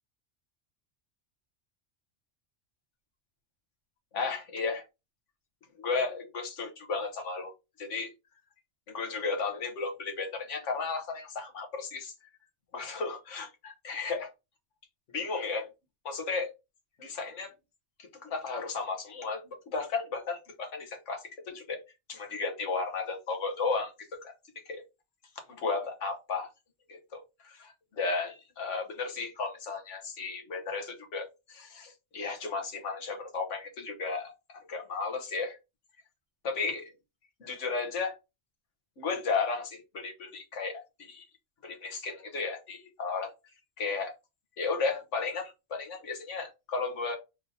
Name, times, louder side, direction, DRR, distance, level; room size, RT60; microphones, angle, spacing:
voice 1, 4.1-4.8 5.8-7.5 7.8-8.1 8.9-12.1 12.7-14.3 15.1-15.7 16.0-16.5 17.0-17.5 18.2-19.4 19.7-21.8 22.1-24.3 24.6-24.8 25.5-26.5 26.9-35.6 36.4-36.9 37.4-38.1 39.0-41.2 41.6-43.3 43.8-44.1 44.6-47.2, left 4 dB, 85° left, 4 dB, 1.4 m, -34 dB
3.6 x 2.8 x 3.8 m, 0.25 s
omnidirectional pair, 1.2 m